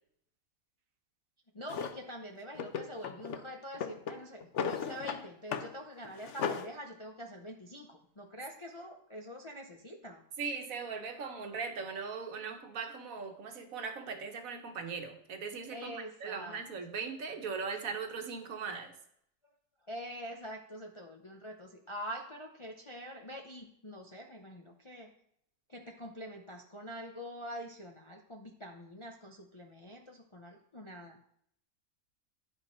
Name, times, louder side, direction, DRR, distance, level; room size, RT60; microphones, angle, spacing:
voice 1, 1.5-10.2 15.7-16.6 19.9-25.1 25.7-31.4, equal, 35° left, 2 dB, 0.5 m, -45 dB
Drawer open or close, 1.7-2.0 2.5-3.4 3.7-5.2 5.5-5.7 6.0-6.7, left 6 dB, 65° left, 0.8 m, -36 dB
voice 2, 10.4-18.9, right 5 dB, 75° right, 5 dB, 1.4 m, -39 dB
9.7 x 5.1 x 4.3 m, 0.70 s
omnidirectional pair, 1.5 m